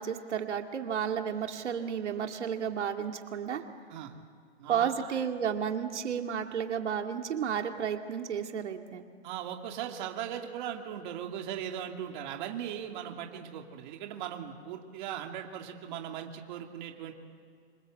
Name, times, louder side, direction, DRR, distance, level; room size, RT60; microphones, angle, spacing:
voice 1, 0.0-3.6 4.7-9.0, right 8 dB, 90° right, 4 dB, 2.4 m, -32 dB
voice 2, 4.6-5.1 9.2-17.1, right 9 dB, 45° right, 3 dB, 2.7 m, -38 dB
28.5 x 26.0 x 7.8 m, 2.1 s
hypercardioid pair, 160°, 34 cm